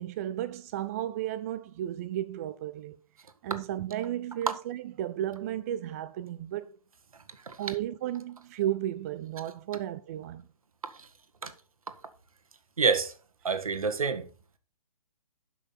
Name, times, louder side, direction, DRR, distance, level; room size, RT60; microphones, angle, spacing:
voice 1, 0.0-6.8 7.6-10.4, right 12 dB, 25° right, 0.3 m, -34 dB
voice 2, 12.8-13.1 13.4-14.3, right 5 dB, 70° right, 1.5 m, -27 dB
11.5 x 6.1 x 4.2 m
figure-of-eight pair, 125°, 19 cm